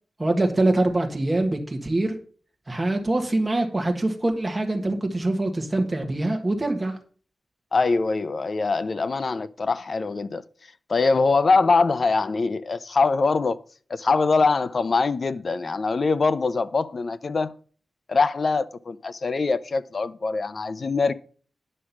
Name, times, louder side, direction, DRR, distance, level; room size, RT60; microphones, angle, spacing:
voice 1, 0.2-2.2 2.7-7.0, right 2 dB, 15° right, 1.7 m, -24 dB
voice 2, 7.7-10.4 10.9-13.6 13.9-17.5 18.1-21.1, left 4 dB, 40° left, 0.5 m, -23 dB
10.0 x 6.2 x 5.9 m
wide cardioid pair, 175°, 0 cm